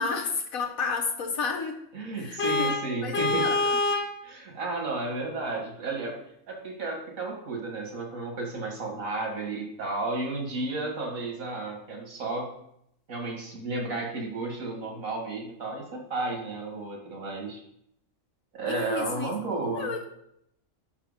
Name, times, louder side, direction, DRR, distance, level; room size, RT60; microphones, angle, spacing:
voice 1, 0.0-1.8 2.2-3.8 18.7-19.3 19.7-20.0, left 4 dB, 85° left, 1 dB, 1.4 m, -31 dB
voice 2, 1.9-3.5 4.2-6.2 6.5-12.5 13.1-17.6 18.5-19.9, right 3 dB, 80° right, 1 dB, 2.3 m, -33 dB
Vehicle horn car horn honking, 2.4-4.2, left 3 dB, 55° left, 0.9 m, -26 dB
5.7 x 4.9 x 6.5 m, 0.74 s
omnidirectional pair, 1.4 m